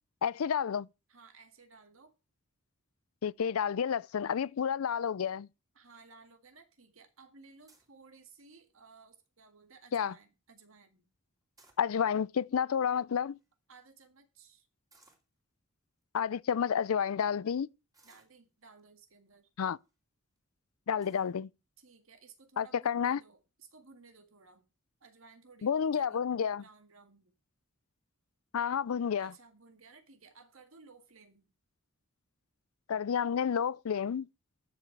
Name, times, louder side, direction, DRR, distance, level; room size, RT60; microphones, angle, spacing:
voice 1, 0.2-0.9 3.2-5.5 9.9-10.1 11.8-13.4 16.1-17.7 19.6-19.8 20.9-21.5 22.6-23.2 25.6-26.6 28.5-29.3 32.9-34.3, left 7 dB, 85° left, 0.4 m, -30 dB
voice 2, 1.1-2.2 5.7-11.1 13.7-14.7 18.0-19.5 21.8-24.7 25.0-26.2 26.6-27.3 29.2-31.5, right 4 dB, 70° right, 2.0 m, -58 dB
sound 1, 7.7-8.0 8.6-9.0 9.4-9.5 9.7-10.0 11.4-12.3 13.0-13.1 13.3-13.5 14.9-15.3 16.0-16.1 16.7-16.8 17.9-18.8 19.6-19.9 20.4-20.5 21.0-21.3, right 3 dB, 15° right, 2.7 m, -65 dB
13.0 x 7.4 x 4.6 m
head